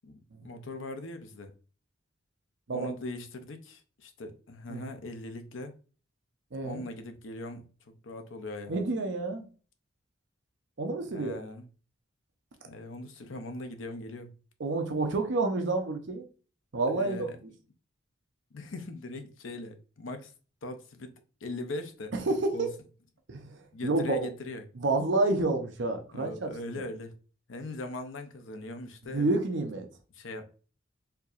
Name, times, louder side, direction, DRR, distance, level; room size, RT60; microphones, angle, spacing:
voice 1, 0.0-1.5 2.7-5.7 6.6-8.8 11.1-11.6 12.6-14.3 16.9-17.4 18.5-20.3 20.6-22.3 22.5-22.7 23.7-24.6 26.1-27.1 27.5-29.3 30.1-30.5, left 2 dB, 75° left, 0.6 m, -40 dB
voice 2, 6.5-6.8 8.7-9.4 10.8-11.4 14.6-16.2 16.7-17.3 22.1-22.7 23.3-24.3 24.8-26.8 29.1-29.9, right 2 dB, 65° right, 0.6 m, -29 dB
4.5 x 2.7 x 2.4 m
head